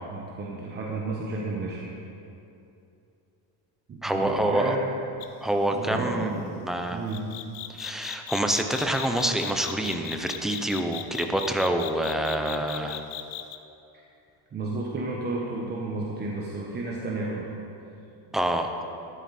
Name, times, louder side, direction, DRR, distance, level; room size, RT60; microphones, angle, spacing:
voice 1, 0.1-1.9 3.9-4.8 5.7-6.3 6.9-7.3 13.9-14.0 14.5-17.5, right 2 dB, 20° right, -3 dB, 1.2 m, -32 dB
voice 2, 4.0-4.8 5.4-7.0 7.7-13.0 18.3-18.7, right 1 dB, ahead, 4 dB, 0.5 m, -27 dB
sound 1, 5.2-5.4 7.1-13.6, left 14 dB, 85° left, 0.8 m, -37 dB
13.0 x 12.5 x 4.2 m, 2.8 s
cardioid pair, 155°, 46 cm